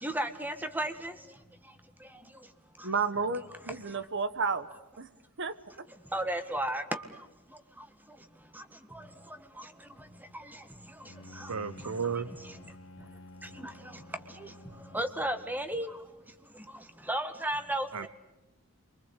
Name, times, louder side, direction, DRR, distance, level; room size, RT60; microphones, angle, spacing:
voice 1, 0.0-1.1 6.1-7.0 14.9-15.9 17.1-18.1, right 1 dB, 10° right, 1.6 m, -32 dB
voice 2, 2.8-4.7 5.0-5.1 5.4-5.5, right 4 dB, 55° right, 1.3 m, -31 dB
Bowed string instrument, 11.0-16.0, left 2 dB, 65° left, 1.5 m, -51 dB
voice 3, 11.5-12.3 17.9-18.1, right 6 dB, 85° right, 0.9 m, -33 dB
28.5 x 23.5 x 8.4 m
head